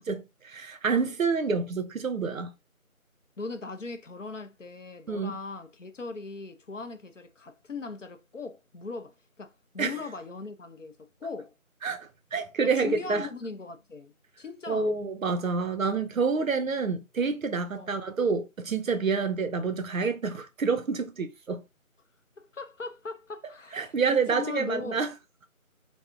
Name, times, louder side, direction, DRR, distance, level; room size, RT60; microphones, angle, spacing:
voice 1, 0.0-2.5 5.1-5.3 9.8-9.9 11.8-13.3 14.7-21.6 23.7-25.1, right 4 dB, 70° right, 0.6 m, -28 dB
voice 2, 3.4-11.0 11.2-11.5 12.6-15.0 17.8-18.0 19.1-19.3 22.4-25.0, left 4 dB, 60° left, 0.5 m, -39 dB
3.4 x 2.0 x 2.4 m
figure-of-eight pair, 175°, 43 cm